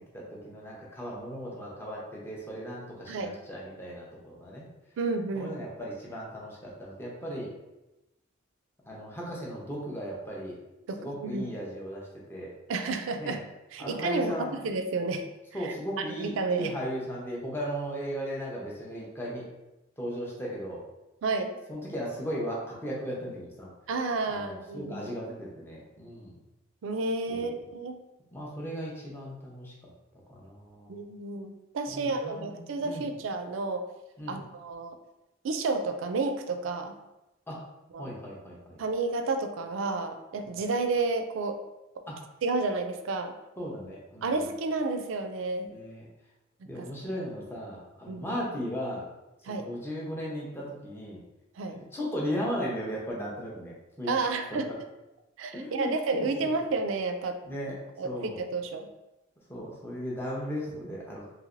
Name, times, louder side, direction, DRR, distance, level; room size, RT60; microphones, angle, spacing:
voice 1, 0.1-4.7 5.3-7.5 8.9-10.5 11.0-12.5 13.2-13.4 13.8-14.6 15.5-19.4 20.0-20.8 21.7-23.7 24.3-26.4 27.3-27.5 28.3-29.9 30.3-31.0 31.9-33.1 34.2-34.4 37.5-37.6 38.0-38.8 40.5-40.6 42.1-42.2 43.6-44.3 45.7-46.1 46.6-49.0 49.5-51.2 51.9-54.2 54.5-54.6 55.5-56.5 57.4-57.7 58.0-58.4 59.5-61.2, equal, 10° left, -4 dB, 0.6 m, -36 dB
voice 2, 5.0-5.6 10.9-11.5 12.7-13.4 13.7-15.2 15.6-16.7 21.2-21.5 23.9-25.1 26.8-28.0 30.9-33.8 34.3-35.0 35.4-37.0 37.9-38.2 38.8-41.6 42.4-43.3 44.2-45.7 46.8-46.9 48.1-48.2 49.4-49.7 51.6-51.8 54.0-54.7 55.4-57.4 58.0-58.9, right 3 dB, 75° right, 7 dB, 0.3 m, -31 dB
3.1 x 2.9 x 2.5 m, 0.98 s
head